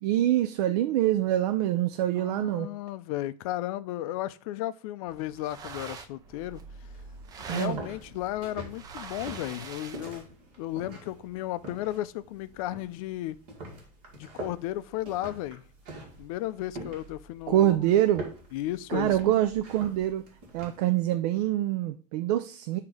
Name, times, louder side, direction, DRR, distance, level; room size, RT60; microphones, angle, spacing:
voice 1, 0.0-2.7 7.5-7.8 17.5-18.2 18.9-20.2 20.5-22.8, right 13 dB, 70° right, 0.4 m, -25 dB
voice 2, 2.1-6.6 7.5-13.4 14.1-15.6 16.2-17.8 18.5-19.3, left 14 dB, 60° left, 0.4 m, -34 dB
sound 1, 5.1-10.2, right 5 dB, 20° right, 0.4 m, -44 dB
sound 2, 6.2-20.8, right 2 dB, 45° right, 2.0 m, -44 dB
7.9 x 2.8 x 4.8 m
supercardioid pair, 175°, 20 cm